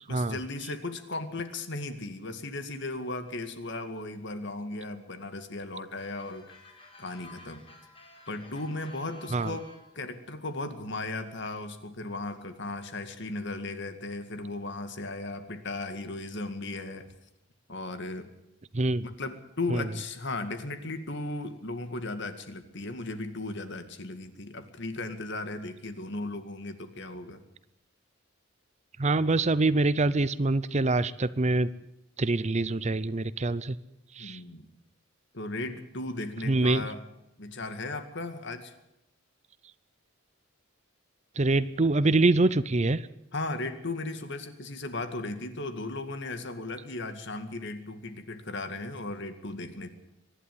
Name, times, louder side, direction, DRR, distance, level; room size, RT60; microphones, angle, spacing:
voice 1, 0.1-6.5 7.0-7.6 8.3-9.7 9.9-17.1 17.7-18.3 19.0-27.4 34.2-34.7 35.3-37.0 37.4-38.7 43.3-49.9, left 2 dB, 60° left, 9 dB, 2.1 m, -36 dB
sound 1, 6.0-9.9, left 1 dB, 25° left, 4.3 m, -52 dB
voice 2, 29.0-31.7 32.2-33.8 34.2-34.4 36.5-36.9 41.4-43.0, right 2 dB, 35° right, 17 dB, 0.6 m, -25 dB
24.0 x 11.5 x 9.5 m, 0.86 s
head